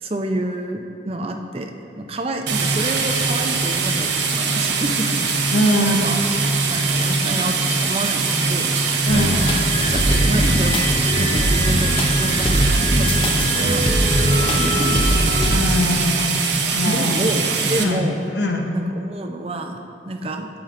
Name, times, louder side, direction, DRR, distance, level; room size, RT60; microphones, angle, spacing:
voice 1, 0.0-6.2 6.4-9.5 9.9-10.9 11.2-15.0 16.8-18.2 18.7-20.5, right 1 dB, 35° right, 4 dB, 0.5 m, -28 dB
sound 1, 2.5-17.8, right 4 dB, 85° right, 0.8 m, -21 dB
voice 2, 5.5-5.9 9.1-9.4 15.5-16.3 16.7-17.3 17.8-18.1 18.3-18.7, left 1 dB, 85° left, 1 dB, 1.0 m, -21 dB
sound 2, 9.1-15.6, equal, 30° left, 0.6 m, -21 dB
9.4 x 8.8 x 2.6 m, 2.6 s
head